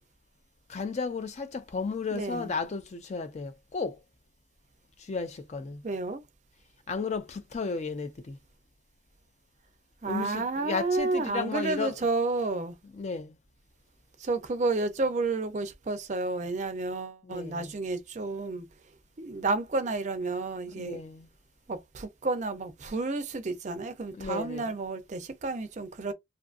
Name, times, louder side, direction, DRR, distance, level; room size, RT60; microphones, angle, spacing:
voice 1, 0.7-4.0 5.0-5.8 6.9-8.4 10.1-12.0 13.0-13.3 17.2-17.7 20.8-21.3 24.2-24.7, left 4 dB, 35° left, 0.3 m, -34 dB
voice 2, 2.1-2.5 5.8-6.2 10.0-12.8 14.2-18.7 19.2-21.0 21.7-26.1, right 3 dB, 40° right, 0.4 m, -31 dB
2.6 x 2.5 x 2.4 m
head